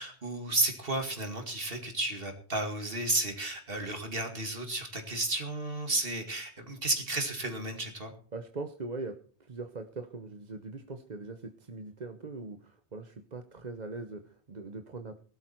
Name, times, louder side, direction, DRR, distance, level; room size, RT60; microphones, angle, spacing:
voice 1, 0.0-8.1, right 2 dB, 60° right, 5 dB, 2.5 m, -32 dB
voice 2, 8.3-15.2, right 3 dB, 45° right, 7 dB, 1.0 m, -41 dB
18.0 x 12.0 x 4.5 m, 0.41 s
omnidirectional pair, 1.1 m